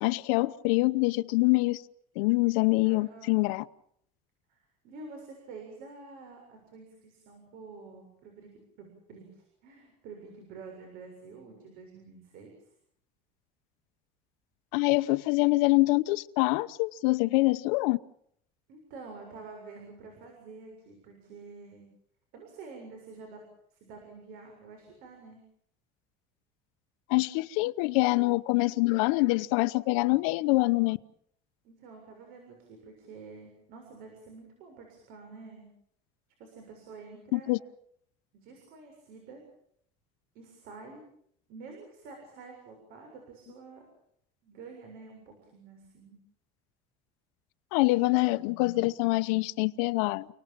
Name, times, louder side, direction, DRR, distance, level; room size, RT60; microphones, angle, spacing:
voice 1, 0.0-1.8 2.2-3.6 14.7-18.0 27.1-31.0 37.3-37.6 47.7-50.3, left 22 dB, 85° left, 0.9 m, -25 dB
voice 2, 2.8-3.4 4.5-8.5 8.8-12.5 18.7-21.8 22.3-23.4 23.7-25.4 31.6-35.7 36.4-37.5 38.3-39.4 40.3-41.0 41.5-43.8 44.4-46.2, right 4 dB, 60° right, 7.2 m, -48 dB
30.0 x 18.5 x 7.5 m
cardioid pair, 155°, 17 cm